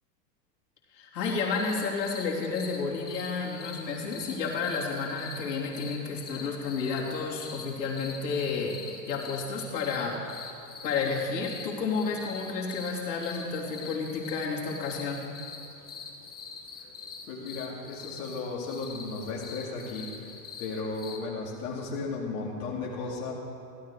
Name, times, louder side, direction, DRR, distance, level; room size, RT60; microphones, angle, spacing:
voice 1, 0.9-8.8 9.1-10.6 10.8-15.3, left 4 dB, 75° left, -3 dB, 3.3 m, -31 dB
sound 1, 1.5-21.2, left 5 dB, 20° left, 1.3 m, -44 dB
voice 2, 17.3-23.3, left 3 dB, 55° left, -5 dB, 2.6 m, -35 dB
16.0 x 12.5 x 4.9 m, 2.7 s
hypercardioid pair, 130°, 49 cm